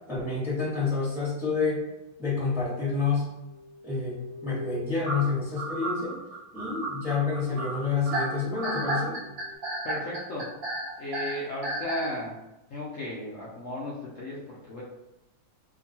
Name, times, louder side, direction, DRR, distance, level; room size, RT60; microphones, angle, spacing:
voice 1, 0.1-1.8 2.2-3.3 3.8-6.1 6.5-9.2, left 4 dB, ahead, -8 dB, 0.9 m, -28 dB
sound 1, 2.8-6.4 7.0-7.1 7.5-9.6, left 2 dB, 65° left, 1.0 m, -47 dB
sound 2, 5.0-12.2, right 2 dB, 50° right, 1.0 m, -32 dB
voice 2, 9.8-10.5 11.0-12.3 12.7-14.8, left 1 dB, 90° left, -6 dB, 0.6 m, -35 dB
2.9 x 2.6 x 2.7 m, 0.95 s
omnidirectional pair, 2.1 m